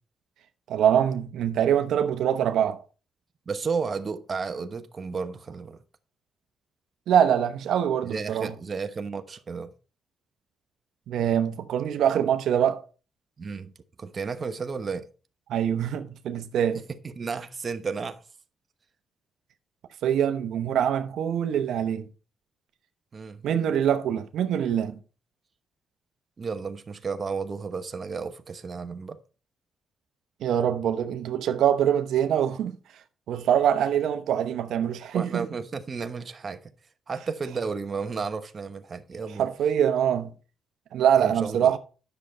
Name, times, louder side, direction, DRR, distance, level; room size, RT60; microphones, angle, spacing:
voice 1, 0.7-2.8 7.1-8.5 11.1-12.8 15.5-16.8 20.0-22.1 23.4-25.0 30.4-32.8 33.3-35.5 39.4-40.3 40.9-41.8, right 9 dB, 80° right, 0.8 m, -24 dB
voice 2, 3.5-5.8 8.0-9.7 13.4-13.7 14.0-15.1 16.7-18.2 23.1-23.5 26.4-29.2 35.1-36.6 37.1-39.5 41.2-41.8, right 5 dB, 40° right, 1.0 m, -33 dB
10.0 x 6.7 x 4.3 m
cardioid pair, 80°, 0 cm